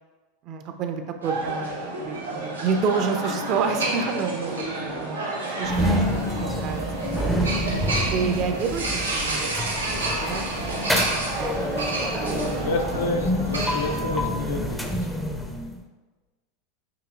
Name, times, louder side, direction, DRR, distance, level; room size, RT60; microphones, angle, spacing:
voice 1, 0.4-1.8 2.0-6.8 7.7-9.5 10.2-10.8 11.1-12.8, right 5 dB, 40° right, 6 dB, 0.5 m, -29 dB
sound 1, 1.2-14.0, right 2 dB, 85° right, 1.0 m, -30 dB
sound 2, 5.6-15.8, equal, 5° left, 0.5 m, -28 dB
voice 2, 12.3-15.0, left 2 dB, 70° left, 3 dB, 0.6 m, -29 dB
6.8 x 2.9 x 2.4 m, 1.2 s
figure-of-eight pair, 85°, 0 cm